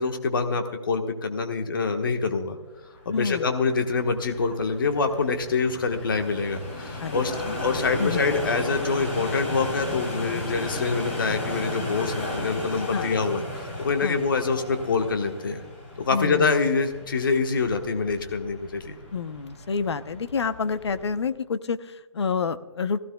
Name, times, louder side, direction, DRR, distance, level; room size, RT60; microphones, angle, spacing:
voice 1, 0.0-2.6 3.0-7.4 7.6-15.6 16.0-19.0, left 4 dB, 45° left, 5 dB, 1.2 m, -25 dB
sound 1, 3.0-21.3, left 1 dB, 25° left, 3.8 m, -35 dB
voice 2, 3.1-3.5 7.0-7.5 8.0-8.2 12.9-13.1 14.0-14.2 16.1-16.6 19.1-23.0, left 5 dB, 65° left, 12 dB, 0.7 m, -28 dB
20.5 x 15.5 x 2.2 m, 1.2 s
hypercardioid pair, 175°, 15 cm